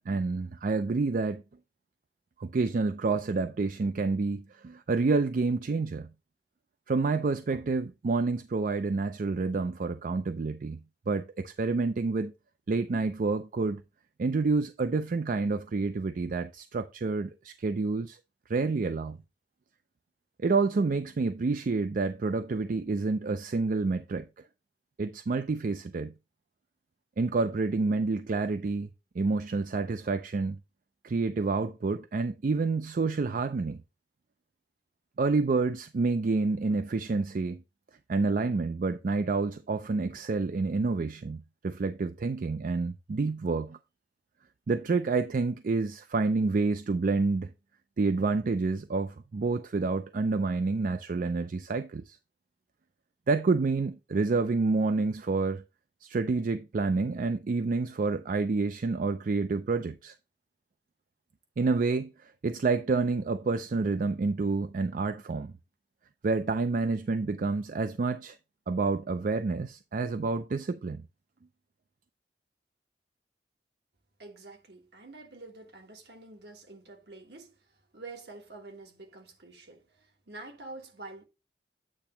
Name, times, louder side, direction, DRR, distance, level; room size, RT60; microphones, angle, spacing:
voice 1, 0.1-1.4 2.4-6.1 6.9-10.8 11.1-12.3 12.7-13.8 14.2-18.2 18.5-19.2 20.4-24.3 25.0-26.1 27.2-28.9 29.2-30.6 31.0-33.8 35.2-37.6 38.1-43.8 44.7-47.5 48.0-52.2 53.3-55.6 56.0-60.1 61.6-65.5 66.2-68.4 68.7-71.0, right 3 dB, 50° right, 0.4 m, -28 dB
voice 2, 74.2-81.2, right 2 dB, 70° right, 1.5 m, -47 dB
8.6 x 2.9 x 5.6 m
head